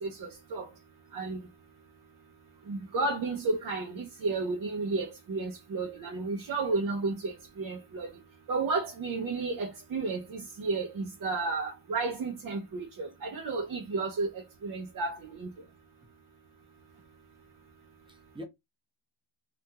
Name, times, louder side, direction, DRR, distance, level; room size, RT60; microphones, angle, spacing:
voice 1, 0.0-0.7 1.1-1.4 2.7-8.1 8.5-14.3 14.6-15.5, right 3 dB, 45° right, 0.6 m, -32 dB
voice 2, 6.0-6.5 18.1-18.4, left 1 dB, 10° right, 0.7 m, -47 dB
2.8 x 2.5 x 2.3 m
cardioid pair, 125°, 47 cm